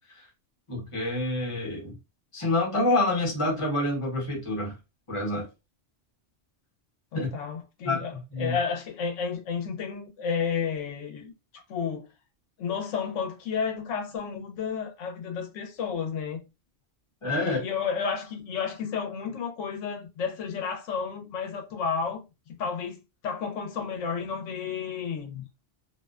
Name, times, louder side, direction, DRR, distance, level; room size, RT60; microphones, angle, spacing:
voice 1, 0.7-2.0 2.3-4.7 5.1-5.5 7.1-7.3 7.8-8.0 8.3-8.6 17.2-17.6, left 2 dB, 30° left, 0.9 m, -27 dB
voice 2, 7.1-11.3 11.7-12.1 12.6-16.4 17.4-23.0 23.2-25.4, left 6 dB, 85° left, 0.9 m, -31 dB
2.5 x 2.1 x 2.3 m
omnidirectional pair, 1.2 m